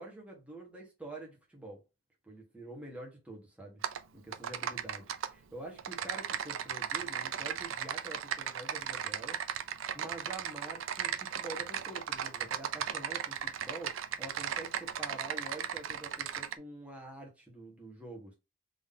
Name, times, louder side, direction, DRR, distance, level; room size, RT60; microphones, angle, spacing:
voice 1, 0.0-1.8 2.2-3.8 4.1-9.4 9.9-18.3, right 2 dB, 5° right, 1.4 m, -47 dB
Typing, 3.8-4.0 4.3-5.3 5.8-16.5, right 8 dB, 85° right, 0.4 m, -36 dB
3.8 x 3.1 x 3.7 m
head